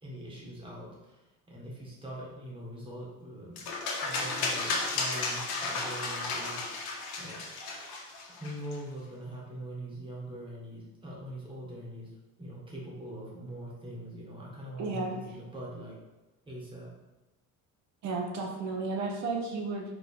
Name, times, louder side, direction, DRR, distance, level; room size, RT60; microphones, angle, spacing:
voice 1, 0.0-3.7 4.0-7.4 8.4-12.1 12.4-15.9 16.5-16.9, right 1 dB, 15° right, -4 dB, 1.6 m, -42 dB
sound 1, 3.6-8.8, left 3 dB, 75° left, 1.5 m, -33 dB
voice 2, 14.8-15.1 18.0-19.8, right 3 dB, 45° right, 1 dB, 1.1 m, -33 dB
4.8 x 4.0 x 5.4 m, 1.1 s
cardioid pair, 170°, 38 cm